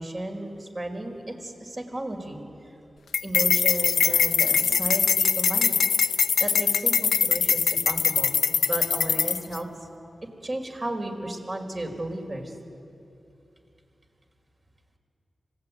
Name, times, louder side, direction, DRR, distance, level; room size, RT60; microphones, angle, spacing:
voice 1, 0.0-2.7 3.2-5.8 6.4-8.3 8.7-9.9 10.4-12.6, right 1 dB, 45° right, 3 dB, 4.8 m, -34 dB
sound 1, 3.1-9.6, left 6 dB, 85° left, 0.5 m, -22 dB
26.0 x 19.0 x 9.4 m, 2.7 s
cardioid pair, 45°, 0 cm